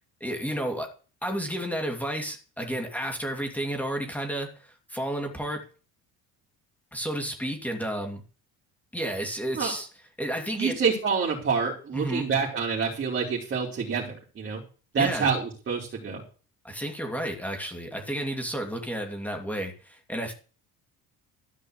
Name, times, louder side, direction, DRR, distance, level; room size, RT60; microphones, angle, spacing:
voice 1, 0.2-0.9 1.2-5.6 6.9-8.2 8.9-9.9 10.2-10.8 11.9-12.3 15.0-15.3 16.6-20.3, right 1 dB, 5° left, 2 dB, 2.6 m, -31 dB
voice 2, 10.5-14.6 14.9-16.2, right 5 dB, 35° right, -2 dB, 4.2 m, -27 dB
13.5 x 5.5 x 8.1 m, 0.36 s
cardioid pair, 135°, 33 cm